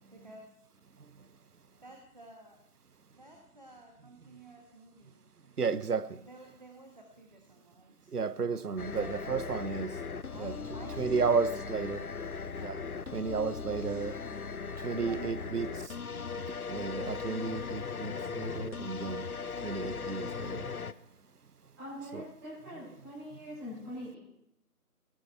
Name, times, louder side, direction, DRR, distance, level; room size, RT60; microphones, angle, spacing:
voice 1, 0.1-0.6 1.8-2.6 3.1-5.6 6.2-8.1 9.0-11.7 12.5-12.8 14.2-15.5, right 1 dB, 30° right, 1.3 m, -53 dB
voice 2, 5.6-6.2 8.1-10.0 10.4-10.6 11.0-12.0 12.6-12.8 13.1-14.2 14.8-15.7 16.7-19.3 19.6-20.7 22.1-22.2, right 5 dB, 75° right, 0.9 m, -33 dB
sound 1, 8.8-20.9, left 5 dB, 70° left, 0.8 m, -38 dB
voice 3, 21.8-24.2, equal, 15° right, 6.1 m, -43 dB
17.0 x 12.0 x 4.5 m
figure-of-eight pair, 165°, 46 cm